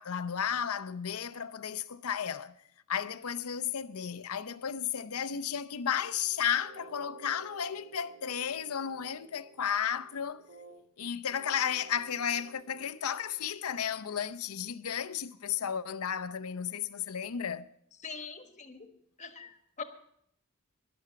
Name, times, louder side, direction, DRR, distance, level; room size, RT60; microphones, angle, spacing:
voice 1, 0.0-2.6 2.9-10.4 11.0-17.7, left 8 dB, 85° left, 0.7 m, -33 dB
sound 1, 6.0-10.9 11.2-13.4, right 6 dB, 85° right, 4.0 m, -55 dB
voice 2, 18.0-18.9 19.2-19.8, left 5 dB, 35° left, 1.4 m, -43 dB
13.5 x 11.5 x 5.8 m
head